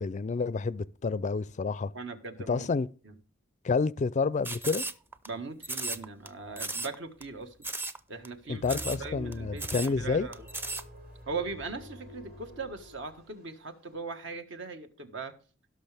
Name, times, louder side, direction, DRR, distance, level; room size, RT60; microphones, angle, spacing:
voice 1, 0.0-1.9 2.5-2.9 3.6-4.8 8.5-10.3, left 4 dB, 35° left, 0.4 m, -29 dB
voice 2, 1.9-2.7 3.0-3.1 5.3-7.5 8.1-10.5 11.3-15.3, right 4 dB, 65° right, 1.5 m, -39 dB
sound 1, 4.4-5.3 5.6-6.3 6.6-6.9 7.2-7.3 7.6-8.0 8.2-8.3 8.6-9.0 9.3-9.4 9.6-9.9 10.3-10.8, right 2 dB, 10° right, 0.6 m, -35 dB
sound 2, 8.6-13.6, equal, 50° right, 3.6 m, -47 dB
17.0 x 6.4 x 3.4 m
head